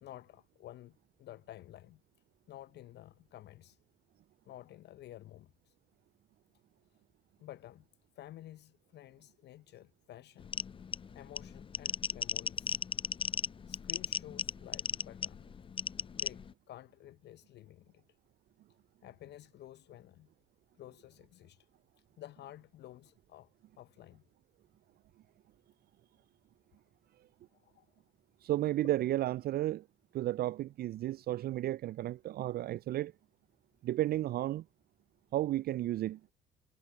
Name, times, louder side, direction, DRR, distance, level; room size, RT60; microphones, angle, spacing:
voice 1, 0.0-2.0 2.5-3.8 4.5-5.7 7.4-7.8 8.2-10.6 11.1-12.8 13.7-15.5 16.1-18.0 19.0-20.3 20.8-21.7 22.2-23.5 23.8-24.2 27.5-27.9, left 13 dB, 60° left, 0.9 m, -52 dB
sound 1, 10.4-16.5, left 6 dB, 25° left, 0.4 m, -36 dB
voice 2, 28.4-29.8 30.1-33.1 33.8-34.6 35.3-36.2, right 14 dB, 50° right, 0.5 m, -33 dB
hypercardioid pair, 45°, 20 cm